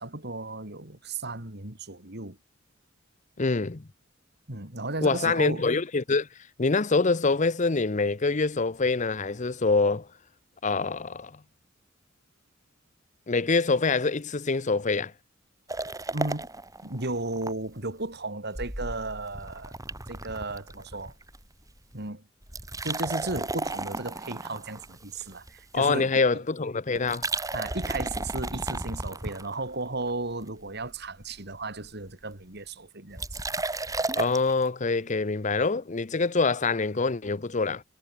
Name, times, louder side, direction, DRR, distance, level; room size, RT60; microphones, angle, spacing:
voice 1, 0.0-2.4 4.5-5.6 16.1-16.5 16.8-19.8 20.1-21.1 21.9-22.2 22.8-26.2 27.5-33.2, right 2 dB, 60° right, 3.9 m, -35 dB
voice 2, 3.4-3.9 5.0-6.3 6.6-10.1 10.6-11.3 13.3-15.1 25.7-27.3 34.2-37.8, left 4 dB, 40° left, 0.8 m, -25 dB
sound 1, 15.7-17.5 17.9-18.0 18.5-21.4 21.7-22.0 22.4-25.8 27.0-29.9 30.4-30.9 31.2-31.3 31.5-32.1 33.2-34.5, right 2 dB, 20° right, 5.2 m, -34 dB
head